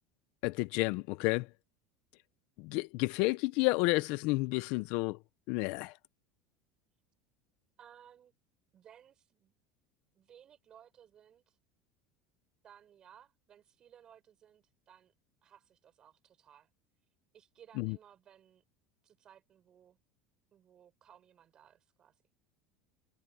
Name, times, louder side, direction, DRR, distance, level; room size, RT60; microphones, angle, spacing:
voice 1, 0.4-1.5 2.6-5.2 5.5-5.9 17.8-18.0, left 23 dB, 65° left, 0.7 m, -31 dB
voice 2, 7.8-8.3 8.7-9.5 10.1-11.6 12.6-15.1 15.4-16.7 17.3-18.6 19.0-20.0 20.5-22.1, right 9 dB, 35° right, 6.1 m, -60 dB
supercardioid pair, 125°, 2 cm